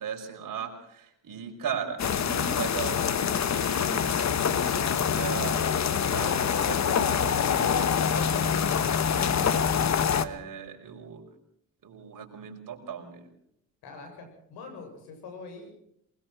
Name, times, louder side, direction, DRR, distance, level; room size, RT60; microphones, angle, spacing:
voice 1, 0.0-11.2 11.8-13.3, right 7 dB, 60° right, 3 dB, 5.2 m, -39 dB
sound 1, 2.0-10.2, left 7 dB, 45° left, 1.3 m, -25 dB
voice 2, 13.8-15.7, left 4 dB, 85° left, 5 dB, 7.1 m, -44 dB
21.5 x 20.0 x 6.0 m, 0.74 s
supercardioid pair, 75°, 37 cm